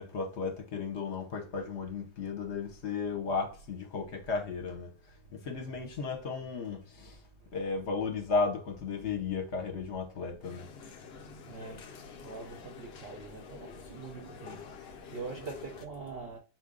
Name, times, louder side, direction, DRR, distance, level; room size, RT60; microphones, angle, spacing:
voice 1, 0.0-4.9 5.5-7.1 7.5-10.6, left 4 dB, 55° left, 0.9 m, -34 dB
voice 2, 9.9-16.4, right 4 dB, 60° right, 0.6 m, -45 dB
sound 1, 10.4-15.9, left 6 dB, 80° left, 0.5 m, -48 dB
4.3 x 2.5 x 3.6 m
omnidirectional pair, 1.8 m